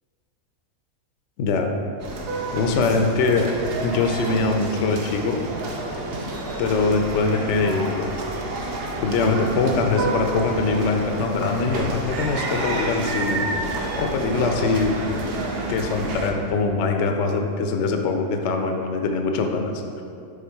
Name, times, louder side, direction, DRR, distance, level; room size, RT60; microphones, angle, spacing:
voice 1, 1.4-1.7 2.5-3.5 3.8-5.4 6.6-8.1 9.0-13.5 14.0-15.0 15.7-19.7, left 4 dB, 65° left, 4 dB, 0.8 m, -22 dB
sound 1, 2.0-16.3, right 2 dB, 55° right, 0.8 m, -29 dB
7.4 x 3.7 x 4.6 m, 2.5 s
omnidirectional pair, 1.5 m